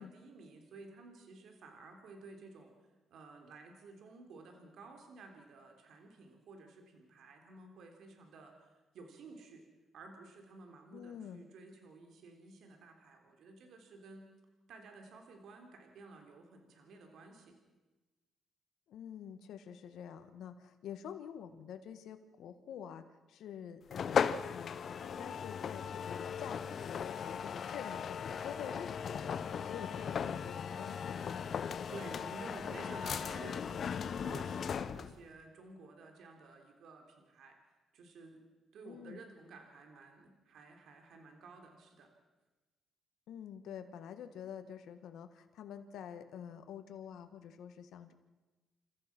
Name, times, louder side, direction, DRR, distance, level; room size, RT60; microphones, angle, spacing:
voice 1, 0.0-2.7 3.1-9.6 9.9-14.3 14.7-17.6 31.6-37.6 37.9-38.4 38.7-42.1, right 3 dB, 70° right, 4 dB, 3.6 m, -53 dB
voice 2, 10.9-11.4 18.9-24.7 25.0-31.5 38.9-39.2 43.3-48.1, left 8 dB, 75° left, 8 dB, 1.7 m, -47 dB
sound 1, 23.9-35.2, left 7 dB, 55° left, 0.9 m, -37 dB
29.5 x 14.5 x 6.2 m, 1.2 s
cardioid pair, 90°, 0 cm